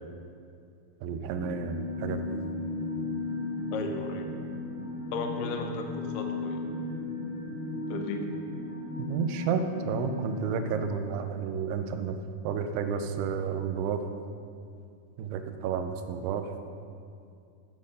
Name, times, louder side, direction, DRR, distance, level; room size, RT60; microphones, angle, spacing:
voice 1, 1.0-2.4 9.0-12.2 12.4-14.0 15.2-16.5, right 6 dB, 80° right, 7 dB, 2.6 m, -31 dB
sound 1, 1.3-10.8, left 2 dB, 35° left, 2.5 m, -35 dB
voice 2, 3.7-4.3 5.1-6.6 7.9-8.3, left 4 dB, 75° left, 4 dB, 2.9 m, -35 dB
14.0 x 7.5 x 5.3 m, 2.4 s
omnidirectional pair, 4.9 m